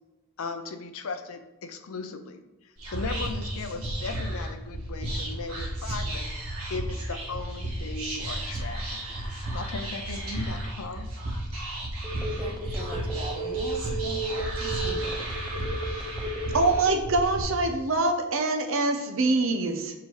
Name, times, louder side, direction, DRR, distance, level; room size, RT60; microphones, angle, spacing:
voice 1, 0.4-2.4 2.9-6.3 6.7-11.1, left 4 dB, 70° left, 7 dB, 0.6 m, -37 dB
Whispering, 2.8-17.4, right 1 dB, 80° right, 1.7 m, -33 dB
Telephone, 12.0-17.3, right 3 dB, 5° left, 1.0 m, -33 dB
voice 2, 12.4-15.3, equal, 25° right, 3 dB, 0.6 m, -40 dB
voice 3, 16.5-19.9, right 2 dB, 60° right, 6 dB, 0.8 m, -24 dB
6.9 x 4.8 x 3.2 m, 1.1 s
head